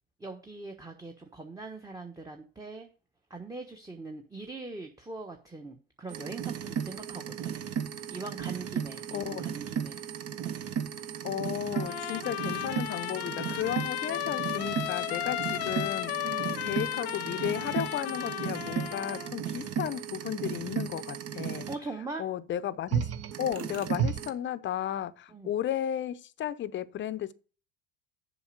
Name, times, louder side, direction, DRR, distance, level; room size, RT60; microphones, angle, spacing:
voice 1, 0.2-2.9 3.3-7.7 8.1-10.0 16.2-16.7 21.7-22.2 25.3-25.5, right 3 dB, 10° right, 1.1 m, -42 dB
sound 1, 6.1-21.7 22.9-24.3, right 8 dB, 50° right, 1.0 m, -35 dB
voice 2, 9.1-9.4 11.2-16.4 16.6-21.7 22.2-23.1 23.4-27.3, left 11 dB, 35° left, 0.6 m, -34 dB
Trumpet, 11.7-19.3, left 15 dB, 85° left, 0.5 m, -35 dB
7.1 x 5.1 x 6.6 m
hypercardioid pair, 70°, 31 cm